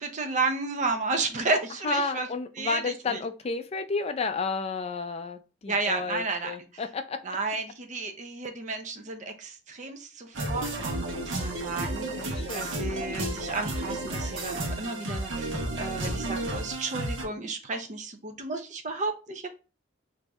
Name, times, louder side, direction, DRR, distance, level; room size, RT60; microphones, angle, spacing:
voice 1, 0.0-2.3 2.6-3.2 5.7-6.5 7.2-19.5, right 3 dB, 40° right, 6 dB, 0.6 m, -32 dB
voice 2, 1.8-7.2 12.0-12.8, left 4 dB, 30° left, 8 dB, 0.4 m, -32 dB
sound 1, 10.3-17.2, right 1 dB, 75° right, 1.0 m, -32 dB
3.0 x 2.7 x 3.4 m, 0.32 s
head